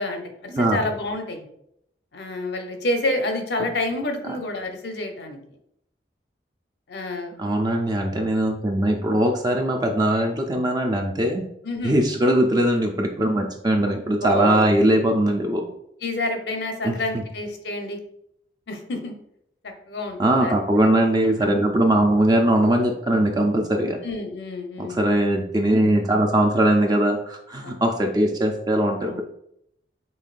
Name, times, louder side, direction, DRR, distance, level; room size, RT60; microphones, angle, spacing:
voice 1, 0.0-1.5 2.1-5.4 6.9-7.4 11.6-12.0 14.2-14.9 16.0-18.0 18.7-19.1 19.9-20.5 21.4-21.7 24.0-25.0 27.6-27.8 29.0-29.2, left 2 dB, 75° left, 4 dB, 0.8 m, -28 dB
voice 2, 7.4-11.4 11.8-15.6 16.8-17.2 20.2-24.0 24.8-29.2, right 1 dB, 25° right, 3 dB, 0.4 m, -21 dB
5.4 x 3.6 x 2.5 m, 0.74 s
head